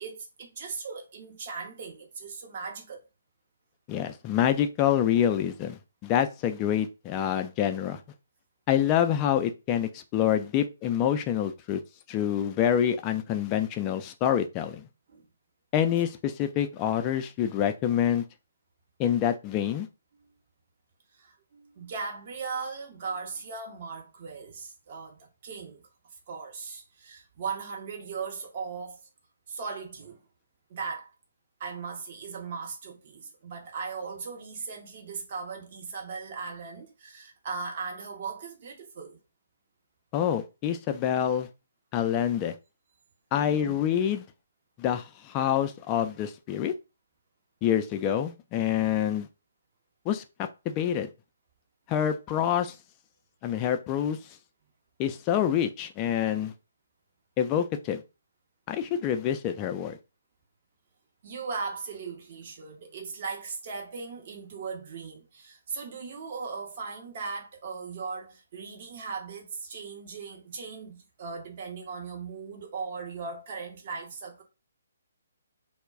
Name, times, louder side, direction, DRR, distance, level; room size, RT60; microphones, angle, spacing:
voice 1, 0.0-3.0 15.1-15.2 21.2-25.8 26.3-29.1 29.5-30.2 30.7-31.1 31.6-39.2 43.3-43.7 61.2-74.4, right 5 dB, 45° right, 0.7 m, -38 dB
voice 2, 3.9-8.0 8.7-11.8 12.1-14.8 15.7-18.2 19.0-19.9 40.1-41.5 41.9-42.5 43.3-44.2 44.8-46.7 47.6-49.3 50.1-51.1 51.9-52.7 53.4-54.2 55.0-56.5 57.4-58.0 58.7-60.0, left 10 dB, 25° left, 0.3 m, -26 dB
2.2 x 2.0 x 3.4 m
figure-of-eight pair, 135°, 0 cm